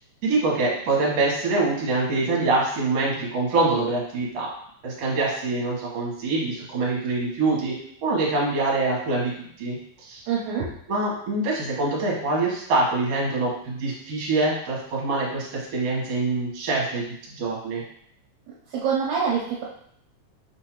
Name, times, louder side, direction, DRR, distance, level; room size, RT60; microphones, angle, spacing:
voice 1, 0.2-4.5 4.8-7.7 8.0-9.3 9.6-9.8 10.1-10.2 10.9-17.0 17.4-17.8, right 3 dB, 60° right, -3 dB, 2.1 m, -24 dB
voice 2, 10.3-10.7 18.7-19.6, right 6 dB, 75° right, -4 dB, 2.0 m, -25 dB
5.6 x 2.7 x 3.0 m, 0.66 s
omnidirectional pair, 3.4 m